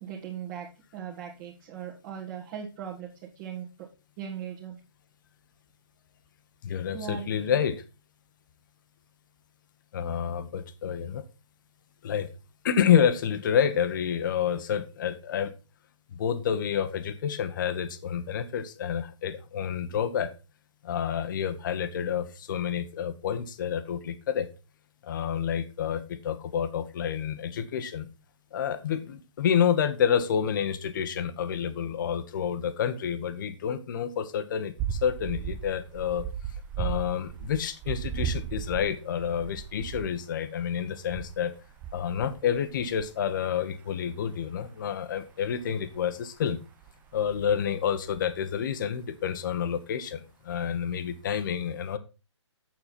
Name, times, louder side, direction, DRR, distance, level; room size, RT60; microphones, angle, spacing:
voice 1, 0.0-3.9 4.2-4.8 6.9-7.7, right 8 dB, 30° right, -5 dB, 1.7 m, -39 dB
voice 2, 6.6-7.8 9.9-11.2 12.0-12.3 12.6-15.5 16.1-20.3 20.8-24.5 25.0-28.1 28.5-36.2 36.8-41.5 41.9-46.6 47.1-52.0, left 8 dB, 45° left, 12 dB, 1.1 m, -29 dB
sound 1, 34.8-40.2 41.1-43.1 45.4-46.0 46.8-47.7 48.1-48.4, right 8 dB, 10° right, 0.4 m, -36 dB
7.7 x 7.4 x 4.2 m, 0.30 s
figure-of-eight pair, 140°, 15 cm